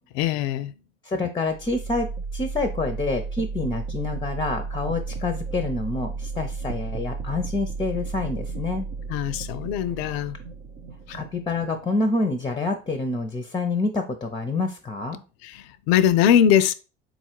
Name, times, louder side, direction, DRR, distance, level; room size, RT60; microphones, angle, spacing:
voice 1, 0.2-0.7 9.1-10.4 15.4-16.7, left 9 dB, 75° left, 0.5 m, -21 dB
voice 2, 1.0-8.9 11.1-15.2, left 3 dB, 15° left, 0.6 m, -27 dB
sound 1, 1.5-13.4, right 4 dB, 50° right, 0.7 m, -34 dB
3.9 x 2.4 x 4.4 m
hypercardioid pair, 70°, 32 cm